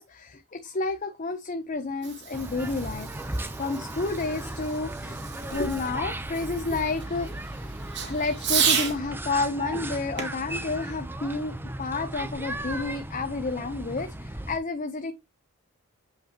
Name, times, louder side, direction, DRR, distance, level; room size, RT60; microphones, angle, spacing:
voice 1, 0.0-5.2 5.5-15.1, left 3 dB, 40° left, 0.8 m, -31 dB
Fireworks, 1.7-9.0 10.2-11.8, right 7 dB, 60° right, 2.2 m, -33 dB
sound 1, 2.3-14.6, right 1 dB, 10° right, 0.7 m, -36 dB
8.4 x 5.4 x 2.9 m
head